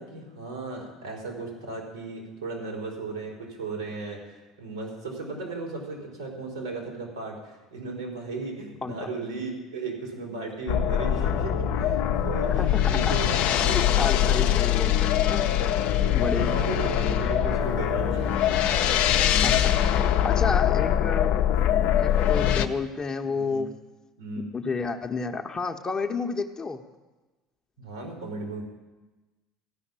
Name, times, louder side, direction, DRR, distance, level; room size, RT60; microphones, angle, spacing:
voice 1, 0.0-14.5 16.1-18.3 18.6-18.7 19.7-20.2 21.6-22.0 23.3-23.6 24.2-24.5 27.8-28.6, right 3 dB, 90° right, -6 dB, 4.3 m, -36 dB
sound 1, 10.7-22.7, left 10 dB, 55° left, 0.7 m, -23 dB
voice 2, 12.6-13.2 13.7-15.5 16.1-16.6 19.4-21.3 22.0-23.7 24.5-26.8, left 4 dB, 25° left, 4 dB, 0.9 m, -31 dB
15.0 x 5.8 x 9.6 m, 1.2 s
figure-of-eight pair, 70°, 3 cm